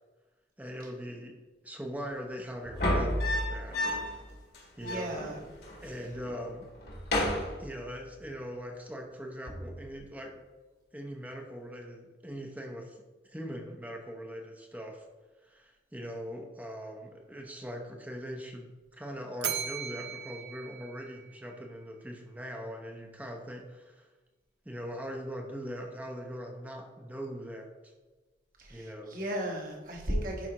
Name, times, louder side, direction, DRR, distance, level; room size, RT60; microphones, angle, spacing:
voice 1, 0.6-1.3 1.6-3.9 4.8-5.1 5.8-6.7 7.6-10.3 10.9-15.1 15.4-24.1 24.6-27.9 28.7-29.2, equal, 10° right, 2 dB, 0.8 m, -41 dB
sound 1, 2.7-4.2 4.5-4.6 4.8-5.8 6.1-6.5 6.8-8.2 9.5-9.8, left 1 dB, 65° left, 1.7 m, -32 dB
voice 2, 4.8-5.4 28.6-30.5, right 1 dB, 50° right, 0 dB, 1.5 m, -35 dB
Bell, 19.4-21.7, right 8 dB, 80° right, 0.7 m, -38 dB
11.0 x 4.9 x 3.0 m, 1.3 s
head